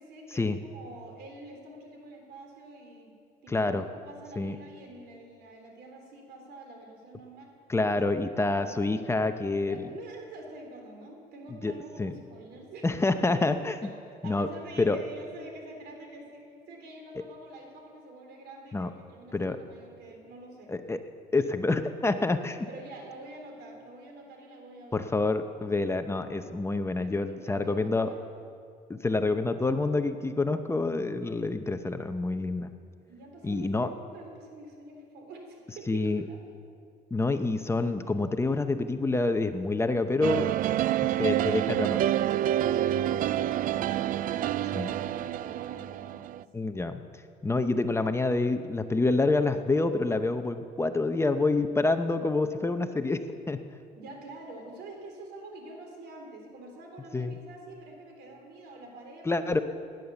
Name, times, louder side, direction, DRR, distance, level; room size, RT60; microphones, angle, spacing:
voice 1, 0.0-3.1 3.4-7.5 7.8-8.8 9.6-12.9 13.8-20.7 22.6-26.1 26.9-28.3 33.1-36.4 40.7-41.1 42.5-46.5 54.0-59.6, right 2 dB, 75° right, 2 dB, 3.6 m, -47 dB
voice 2, 3.5-3.9 4.4-4.6 7.7-9.9 11.6-11.7 12.0-12.1 12.8-13.9 14.2-14.5 14.8-15.0 18.7-18.9 19.3-19.6 20.7-21.0 21.3-22.7 24.9-28.1 28.9-32.7 33.4-33.9 35.9-36.2 37.1-40.5 41.2-42.1 44.7-44.9 46.5-47.0 47.4-53.2 53.5-53.6 57.1-57.3 59.3-59.6, left 3 dB, 15° left, 8 dB, 0.7 m, -27 dB
sound 1, 40.2-46.4, right 12 dB, 55° right, 0.4 m, -28 dB
17.0 x 10.5 x 6.9 m, 2.2 s
cardioid pair, 110°, 17 cm